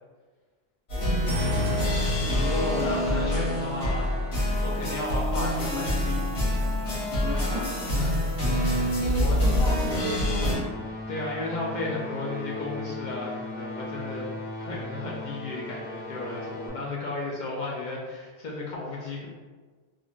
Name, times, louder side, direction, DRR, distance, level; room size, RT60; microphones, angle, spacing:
sound 1, 0.9-10.6, left 1 dB, 75° left, 1.3 m, -26 dB
voice 1, 1.0-1.7 7.2-8.1 9.0-10.7, right 1 dB, 40° right, -8 dB, 0.4 m, -35 dB
voice 2, 2.2-6.7 7.9-8.2 8.6-9.4 11.1-19.3, left 2 dB, 55° left, -4 dB, 0.6 m, -34 dB
sound 2, 10.2-16.7, left 2 dB, 20° left, 0.8 m, -37 dB
3.1 x 2.4 x 2.4 m, 1.4 s
omnidirectional pair, 1.1 m